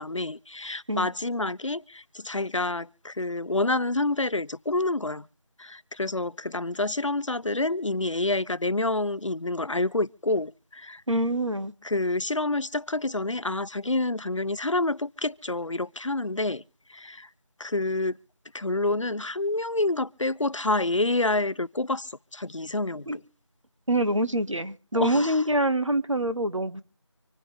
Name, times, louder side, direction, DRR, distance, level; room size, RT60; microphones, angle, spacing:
voice 1, 0.0-5.3 5.6-11.0 11.8-16.6 16.9-17.3 17.6-18.2 18.5-23.2 24.9-25.4, left 2 dB, 75° left, 0.8 m, -28 dB
voice 2, 11.1-11.7 23.1-23.2 23.9-26.8, right 1 dB, 75° right, 1.9 m, -25 dB
26.0 x 10.0 x 3.6 m
figure-of-eight pair, 175°, 16 cm